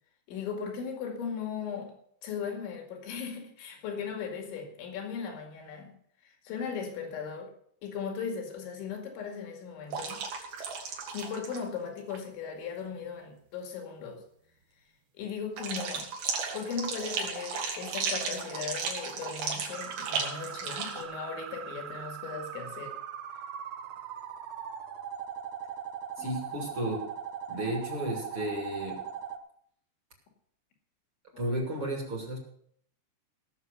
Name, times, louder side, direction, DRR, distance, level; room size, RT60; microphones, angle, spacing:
voice 1, 0.3-1.9 2.2-5.9 6.2-7.5 7.8-10.2 11.1-14.2 15.2-16.1 16.5-23.0 26.2-26.9 27.5-28.1 28.3-28.8 31.3-32.0, left 6 dB, 80° left, 4.6 m, -38 dB
sound 1, 9.9-11.7 12.0-12.2 15.6-21.0, right 5 dB, 60° right, 3.6 m, -35 dB
sound 2, 19.7-29.4, right 8 dB, 75° right, 1.9 m, -40 dB
voice 2, 26.2-27.1 27.5-29.1 31.4-32.4, right 1 dB, 35° right, 2.8 m, -33 dB
17.0 x 7.0 x 6.8 m
omnidirectional pair, 5.2 m